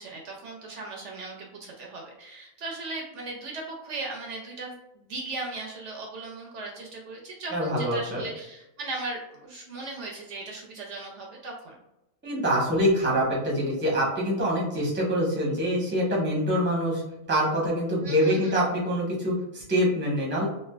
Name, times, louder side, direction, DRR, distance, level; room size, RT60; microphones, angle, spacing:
voice 1, 0.0-11.8 18.0-18.6, right 2 dB, 70° right, 0 dB, 0.8 m, -38 dB
voice 2, 7.5-8.3 12.2-17.0 17.3-20.5, equal, 10° right, -4 dB, 0.6 m, -25 dB
3.2 x 2.5 x 2.2 m, 0.92 s
omnidirectional pair, 1.4 m